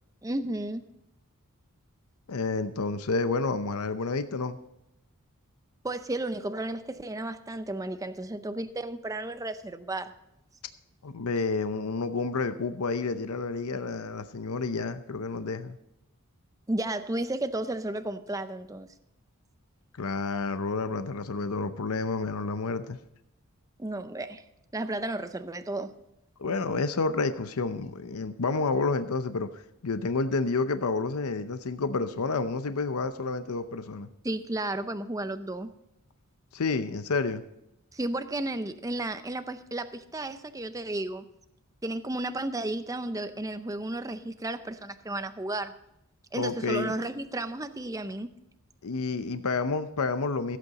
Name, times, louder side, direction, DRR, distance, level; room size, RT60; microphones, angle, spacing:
voice 1, 0.2-0.9 5.8-10.1 16.7-18.9 23.8-24.4 24.7-25.9 34.2-35.7 37.9-41.2 41.8-45.7 46.3-48.3, right 2 dB, 15° right, 10 dB, 0.5 m, -33 dB
voice 2, 2.3-4.6 11.0-15.8 19.9-23.0 26.4-34.1 36.5-37.4 46.4-46.9 48.8-50.6, left 4 dB, 80° left, 10 dB, 0.7 m, -30 dB
15.5 x 8.4 x 4.1 m, 0.85 s
head